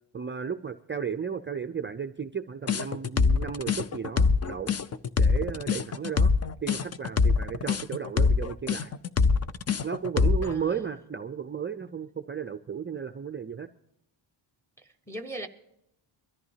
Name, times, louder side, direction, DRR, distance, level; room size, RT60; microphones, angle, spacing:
voice 1, 0.1-4.7 5.2-6.3 6.6-8.9 9.8-13.7, right 7 dB, 25° right, 0.4 m, -34 dB
sound 1, 2.7-10.5, left 4 dB, 35° left, 0.5 m, -24 dB
voice 2, 10.4-10.8 14.8-15.5, right 1 dB, 5° left, 1.0 m, -39 dB
22.5 x 14.0 x 2.8 m
wide cardioid pair, 145°, 49 cm